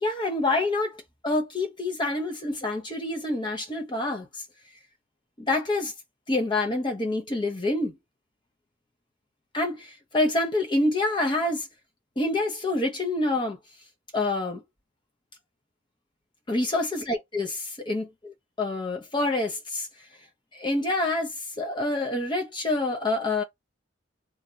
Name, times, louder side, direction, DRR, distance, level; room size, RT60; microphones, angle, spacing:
voice 1, 0.0-4.3 5.4-5.9 6.3-7.9 9.5-11.7 12.2-13.6 14.1-14.6 16.5-19.9 20.5-23.4, left 2 dB, 20° left, 0.7 m, -27 dB
2.5 x 2.2 x 3.8 m
head